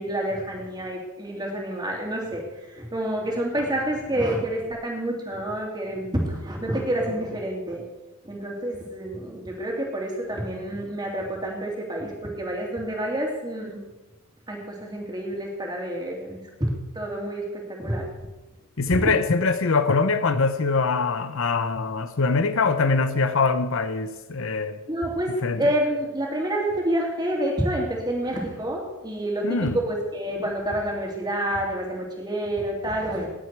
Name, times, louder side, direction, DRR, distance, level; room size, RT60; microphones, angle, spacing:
voice 1, 0.0-2.4 2.7-7.9 8.2-13.9 14.5-18.3 18.8-19.1 24.9-33.3, right 1 dB, 20° right, 0 dB, 2.7 m, -28 dB
voice 2, 18.8-24.8 25.4-25.7 29.4-29.8, left 4 dB, 65° left, 10 dB, 0.8 m, -23 dB
18.5 x 8.3 x 4.6 m, 1.1 s
head